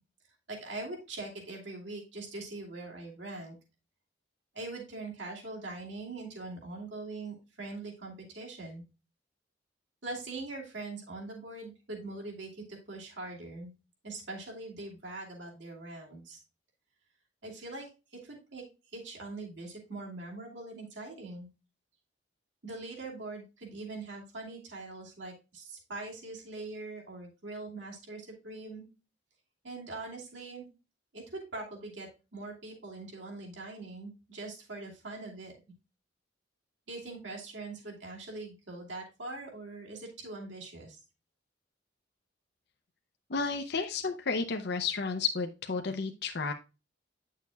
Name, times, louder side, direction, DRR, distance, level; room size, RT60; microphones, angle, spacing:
voice 1, 0.5-3.6 4.5-8.8 10.0-13.7 14.0-16.4 17.4-18.6 18.9-21.5 22.6-28.9 29.6-30.7 31.1-35.5 36.9-41.0, right 2 dB, 70° right, -1 dB, 2.6 m, -42 dB
voice 2, 43.3-46.5, left 4 dB, 60° left, 5 dB, 0.7 m, -32 dB
9.5 x 6.5 x 2.2 m, 0.29 s
head